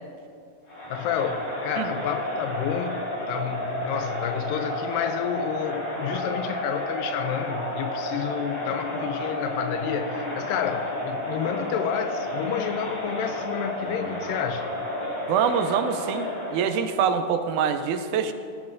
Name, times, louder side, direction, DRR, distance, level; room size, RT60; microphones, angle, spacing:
Crowd, 0.7-16.8, left 1 dB, 45° left, 4.3 m, -31 dB
voice 1, 0.9-14.7, left 8 dB, 85° left, 8 dB, 2.2 m, -30 dB
voice 2, 15.3-18.3, right 7 dB, 80° right, 8 dB, 1.8 m, -25 dB
19.5 x 11.5 x 2.6 m, 2.5 s
omnidirectional pair, 4.0 m